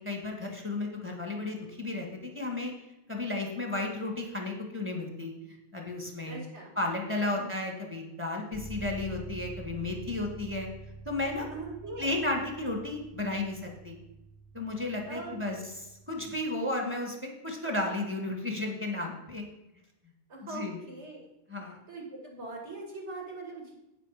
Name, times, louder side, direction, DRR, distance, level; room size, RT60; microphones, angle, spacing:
voice 1, 0.0-2.7 3.1-5.3 5.7-6.4 6.8-10.7 11.1-11.5 12.0-14.0 14.5-19.4 20.5-20.8 21.5-21.8, left 2 dB, 10° right, 1 dB, 1.8 m, -33 dB
voice 2, 6.3-6.7 7.3-7.7 11.5-12.2 15.1-15.3 20.3-21.2 21.6-23.7, right 2 dB, 80° right, -1 dB, 2.6 m, -42 dB
sound 1, 8.5-16.3, right 2 dB, 40° right, 1.4 m, -46 dB
9.0 x 6.9 x 5.0 m, 0.91 s
omnidirectional pair, 1.2 m